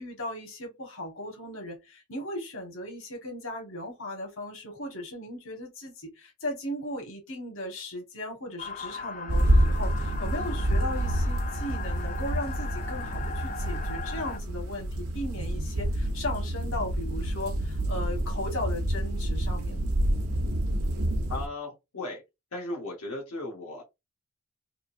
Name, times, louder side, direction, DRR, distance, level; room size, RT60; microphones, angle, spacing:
voice 1, 0.0-19.9, left 1 dB, 65° left, 1.4 m, -37 dB
sound 1, 8.6-14.4, left 5 dB, 35° left, 0.3 m, -39 dB
sound 2, 9.3-21.5, right 1 dB, 85° right, 0.7 m, -28 dB
voice 2, 21.3-22.2 22.5-23.8, left 2 dB, 90° left, 1.2 m, -36 dB
3.7 x 2.6 x 2.6 m
head